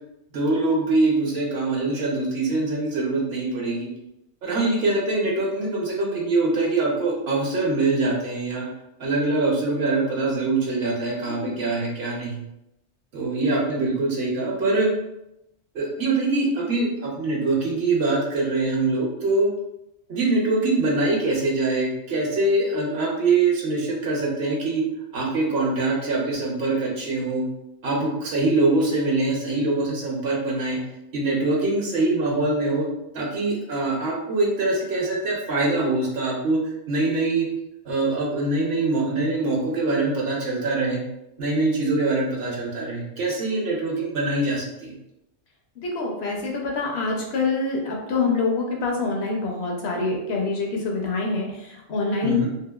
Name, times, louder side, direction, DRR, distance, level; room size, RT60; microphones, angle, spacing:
voice 1, 0.3-3.9 4.4-8.7 9.0-12.5 13.1-14.9 15.7-19.5 20.1-24.8 25.1-27.4 27.8-30.8 31.1-32.9 33.1-36.6 36.9-37.5 37.8-41.0 41.4-44.9 52.2-52.5, right 2 dB, 60° right, -2 dB, 0.9 m, -23 dB
voice 2, 11.2-11.6 45.8-52.5, left 3 dB, 65° left, 0 dB, 0.8 m, -26 dB
2.8 x 2.4 x 2.2 m, 0.87 s
omnidirectional pair, 1.3 m